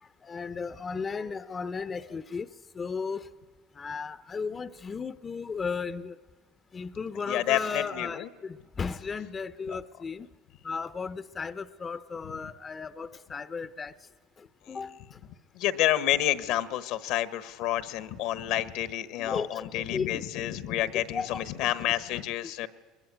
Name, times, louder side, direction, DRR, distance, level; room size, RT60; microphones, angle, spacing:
voice 1, 0.2-2.5 2.7-3.3 3.8-6.2 6.7-10.3 10.6-13.9 14.4-15.0 19.2-20.2 20.9-21.4, left 5 dB, 30° left, 13 dB, 0.7 m, -35 dB
voice 2, 7.2-8.3 9.7-9.8 14.7-14.8 15.5-22.7, left 13 dB, 70° left, 13 dB, 1.2 m, -29 dB
22.0 x 21.0 x 10.0 m, 1.4 s
supercardioid pair, 95°, 0 cm